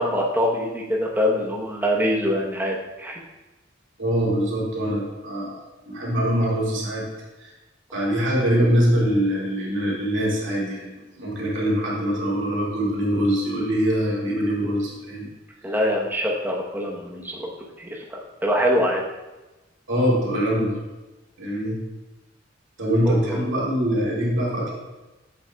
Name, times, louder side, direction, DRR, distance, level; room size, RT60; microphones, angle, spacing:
voice 1, 0.0-3.2 15.6-17.5 17.8-19.0 23.1-23.4, equal, 10° right, -2 dB, 0.9 m, -24 dB
voice 2, 4.0-5.6 5.9-7.1 7.4-7.5 7.9-15.3 19.9-20.8 21.4-21.8 22.8-24.7, equal, 80° right, -5 dB, 2.1 m, -23 dB
7.6 x 6.9 x 2.3 m, 1.1 s
head